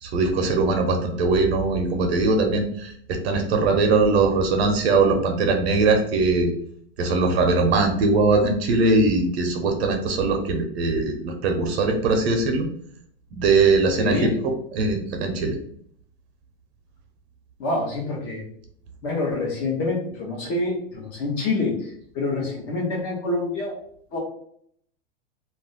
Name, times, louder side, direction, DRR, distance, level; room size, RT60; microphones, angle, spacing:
voice 1, 0.0-6.5 7.0-12.7 13.3-14.3 14.7-15.6, right 3 dB, 70° right, 3 dB, 0.7 m, -21 dB
voice 2, 14.0-14.4 17.6-18.4 19.0-23.8 24.1-24.2, left 3 dB, 35° left, -1 dB, 0.8 m, -26 dB
2.4 x 2.1 x 3.7 m, 0.65 s
supercardioid pair, 170°, 33 cm